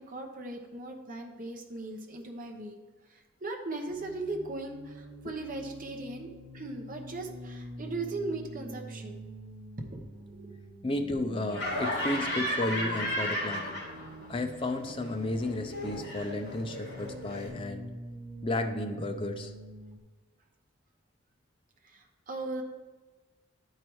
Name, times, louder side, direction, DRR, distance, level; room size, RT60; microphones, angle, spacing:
voice 1, 0.0-2.8 3.1-6.3 6.5-9.3 9.8-10.5 21.8-22.6, right 2 dB, 40° right, 3 dB, 0.9 m, -38 dB
sound 1, 3.9-20.0, right 1 dB, 90° right, 0.8 m, -46 dB
voice 2, 10.8-13.8 14.3-17.9 18.4-19.5, left 2 dB, 25° left, 5 dB, 0.5 m, -33 dB
Laughter, 11.5-14.3 14.6-17.5, left 1 dB, 55° left, 2.5 m, -34 dB
11.0 x 4.7 x 3.1 m, 1.3 s
head